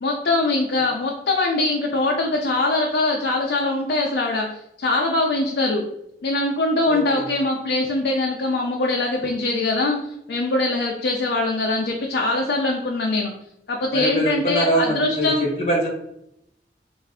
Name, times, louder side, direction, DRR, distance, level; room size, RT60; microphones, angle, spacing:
voice 1, 0.0-5.8 6.2-13.3 13.7-15.5, left 2 dB, 65° left, 0 dB, 0.4 m, -22 dB
voice 2, 6.8-7.3 13.9-15.9, right 1 dB, 35° left, -2 dB, 0.8 m, -23 dB
3.2 x 2.5 x 3.5 m, 0.78 s
head